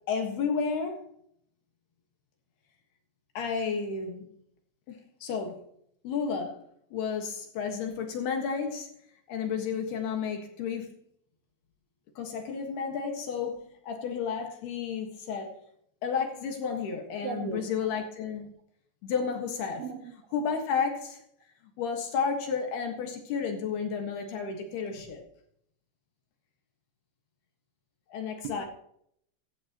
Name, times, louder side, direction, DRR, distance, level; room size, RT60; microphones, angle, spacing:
voice 1, 0.1-1.1 3.3-4.3 4.9-5.6 6.0-6.7 6.9-8.9 9.3-10.9 12.2-15.5 16.0-18.5 19.0-19.8 20.3-21.2 21.8-25.2 28.1-28.7, left 6 dB, 65° left, 3 dB, 3.1 m, -32 dB
voice 2, 17.2-17.9 19.8-20.1 28.4-28.7, right 6 dB, 75° right, 6 dB, 2.2 m, -37 dB
16.0 x 14.5 x 3.0 m, 0.69 s
omnidirectional pair, 5.8 m